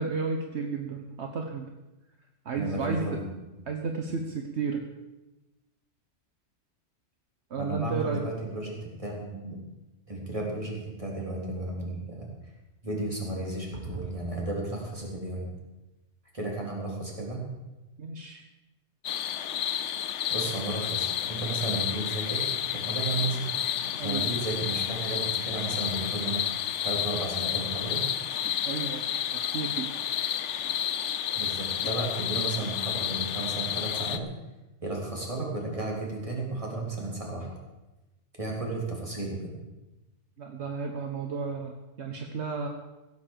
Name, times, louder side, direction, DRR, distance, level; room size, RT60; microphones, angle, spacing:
voice 1, 0.0-1.7 2.4-3.2 3.7-4.8 7.5-8.2 18.0-18.4 24.0-24.2 28.6-29.0 29.5-29.9 40.4-42.7, right 4 dB, 65° right, 4 dB, 1.4 m, -32 dB
voice 2, 2.6-3.2 7.6-9.6 10.1-12.3 12.8-15.5 16.3-17.4 20.3-23.4 24.0-26.4 26.8-28.0 28.3-28.4 31.4-34.3 34.8-37.5 38.4-39.5, right 2 dB, 30° right, -2 dB, 3.8 m, -33 dB
sound 1, 19.0-34.2, left 10 dB, 80° left, 1.0 m, -30 dB
16.0 x 8.1 x 7.5 m, 1.0 s
omnidirectional pair, 1.2 m